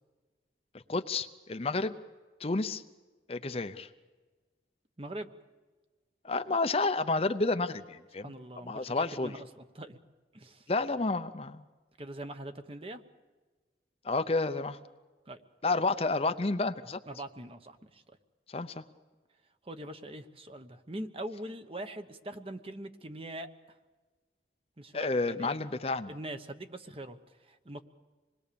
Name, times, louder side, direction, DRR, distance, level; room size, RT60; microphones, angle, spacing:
voice 1, 0.9-1.9 2.4-2.8 3.3-3.9 6.2-8.3 8.7-9.3 10.7-11.6 14.0-14.8 15.6-17.0 18.5-18.8 24.9-26.1, left 3 dB, 35° left, 10 dB, 0.6 m, -30 dB
voice 2, 5.0-5.3 8.2-10.0 10.3-10.7 12.0-13.0 15.3-15.4 17.1-18.0 19.6-23.8 24.8-25.6 26.0-27.8, right 1 dB, 30° right, 8 dB, 1.0 m, -42 dB
26.5 x 20.5 x 6.9 m, 1.3 s
head